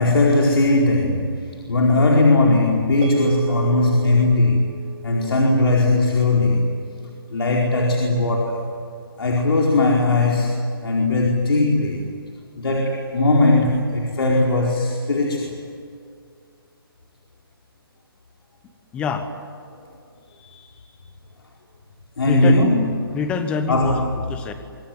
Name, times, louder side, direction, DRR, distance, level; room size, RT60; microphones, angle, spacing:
voice 1, 0.0-4.7 5.0-6.8 7.3-8.7 9.2-12.0 12.6-15.6 20.4-20.6 22.2-23.2 23.7-24.3, left 2 dB, 80° left, -1 dB, 4.7 m, -19 dB
sound 1, 3.0-7.5, right 7 dB, 30° right, 4.4 m, -33 dB
voice 2, 18.9-19.3 22.2-22.7 23.1-24.0 24.3-24.5, left 5 dB, 10° left, 8 dB, 1.2 m, -25 dB
25.0 x 21.0 x 9.6 m, 2.3 s
hypercardioid pair, 170°, 13 cm